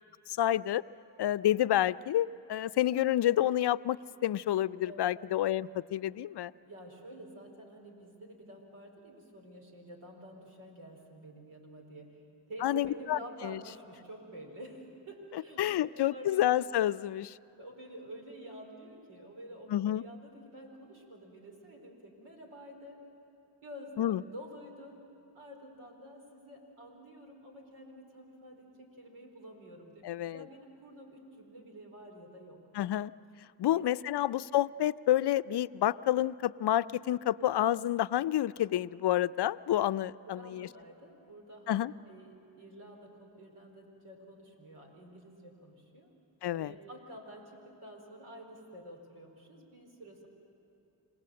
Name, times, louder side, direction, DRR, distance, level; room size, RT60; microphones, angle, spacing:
voice 1, 0.3-0.8 1.2-6.5 12.6-13.6 15.6-17.4 19.7-20.0 24.0-24.2 30.0-30.4 32.7-33.1 33.6-40.7 41.7-41.9 46.4-46.7, left 12 dB, 55° left, 16 dB, 0.6 m, -29 dB
voice 2, 6.6-12.2 12.5-16.5 17.6-23.0 23.6-25.0 25.3-32.6 33.7-34.3 40.2-41.8 42.1-46.1 46.5-50.3, right 1 dB, 75° right, 1 dB, 4.5 m, -49 dB
27.5 x 18.5 x 7.8 m, 3.0 s
supercardioid pair, 40°, 49 cm